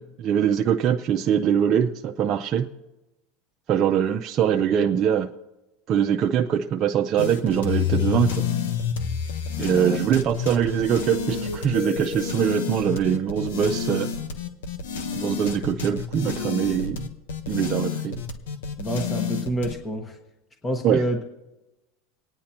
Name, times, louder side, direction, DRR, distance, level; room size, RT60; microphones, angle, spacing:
voice 1, 0.0-2.7 3.7-5.3 5.9-8.5 9.6-14.1 15.2-17.1 17.5-18.2 20.8-21.0, right 8 dB, 40° right, 0.5 m, -23 dB
sound 1, 7.2-19.7, left 7 dB, 90° left, 1.1 m, -29 dB
voice 2, 18.8-20.2 20.6-21.2, right 1 dB, 20° left, 1.3 m, -27 dB
26.0 x 9.6 x 2.9 m
supercardioid pair, 115°, 0 cm